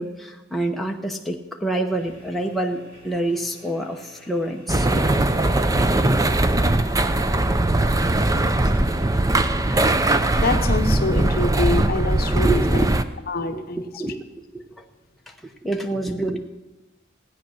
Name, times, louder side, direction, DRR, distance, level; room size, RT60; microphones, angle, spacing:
voice 1, 0.0-4.9 12.4-13.0 13.4-14.2 14.5-14.9 15.3-15.4 15.6-16.4, right 1 dB, ahead, 0 dB, 0.9 m, -27 dB
sound 1, 1.9-11.0, left 1 dB, 45° right, 6.6 m, -51 dB
sound 2, 4.7-13.0, right 2 dB, 15° right, 0.5 m, -20 dB
voice 2, 9.7-12.8 13.3-14.0, left 3 dB, 50° left, 7 dB, 1.0 m, -26 dB
17.0 x 9.6 x 6.3 m, 1.1 s
head